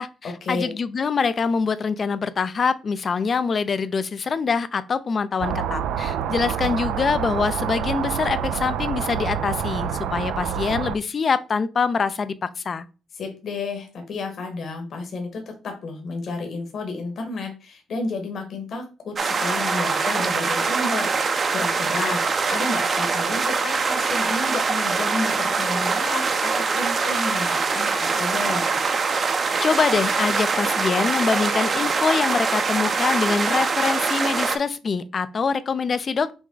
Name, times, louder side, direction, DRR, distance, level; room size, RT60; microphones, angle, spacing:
voice 1, 0.0-12.9 29.3-36.3, left 5 dB, 45° left, 0.5 m, -24 dB
sound 1, 5.4-11.0, right 9 dB, 85° right, 0.4 m, -27 dB
voice 2, 13.1-28.6, left 3 dB, 60° left, 1.4 m, -31 dB
sound 2, 19.2-34.6, right 4 dB, 40° right, 0.7 m, -23 dB
6.1 x 2.2 x 3.8 m
cardioid pair, 90°, 0 cm